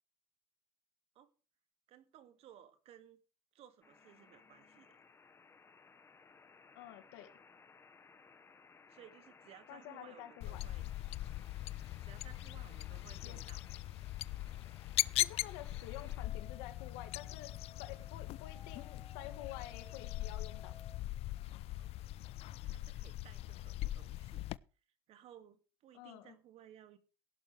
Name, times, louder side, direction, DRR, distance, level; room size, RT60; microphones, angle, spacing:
voice 1, 1.9-3.2 3.5-5.0 8.9-10.9 12.0-13.6 21.8-21.9 22.5-24.5 25.1-27.0, right 10 dB, 50° right, 2.2 m, -59 dB
sound 1, 3.8-21.0, left 5 dB, 20° left, 1.4 m, -60 dB
voice 2, 6.7-7.3 9.7-10.6 13.2-13.4 15.2-17.5 17.8-20.8 25.9-26.3, left 13 dB, 75° left, 2.3 m, -49 dB
sound 2, 10.4-24.6, left 15 dB, 50° left, 0.5 m, -40 dB
16.5 x 11.5 x 3.4 m
supercardioid pair, 110°, 13 cm